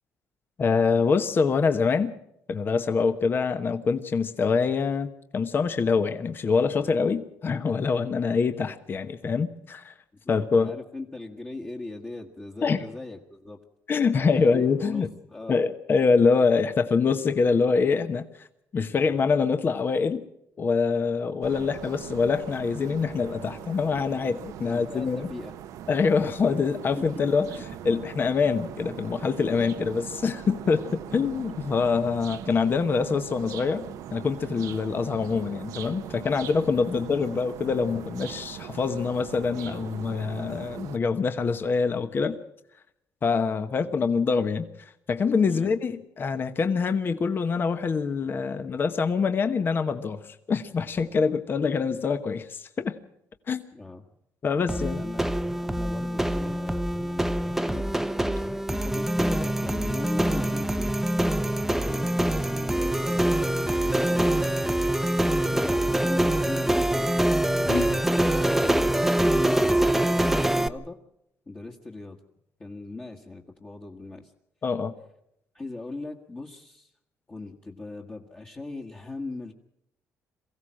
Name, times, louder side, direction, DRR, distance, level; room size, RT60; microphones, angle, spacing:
voice 1, 0.6-2.1 2.5-9.9 10.3-10.7 12.6-12.8 13.9-15.1 15.5-18.5 18.7-20.2 20.6-25.3 25.9-33.8 34.1-42.4 43.2-53.0 53.5-53.6 54.4-55.0 67.7-67.9 74.6-74.9, left 5 dB, 40° left, 9 dB, 1.1 m, -25 dB
voice 2, 10.1-13.6 14.3-15.6 24.6-25.5 36.9-37.0 45.5-45.7 53.7-54.0 54.6-55.2 55.6-57.9 58.7-61.0 61.7-65.0 65.5-67.1 67.8-71.0 71.5-72.2 72.6-74.3 75.5-76.9 77.3-79.5, left 2 dB, 25° left, -1 dB, 1.7 m, -39 dB
sound 1, 21.4-41.0, right 11 dB, 80° right, 0.8 m, -41 dB
sound 2, 54.7-70.7, right 1 dB, 5° right, 0.8 m, -24 dB
23.0 x 15.5 x 7.6 m, 0.79 s
cardioid pair, 105°, 6 cm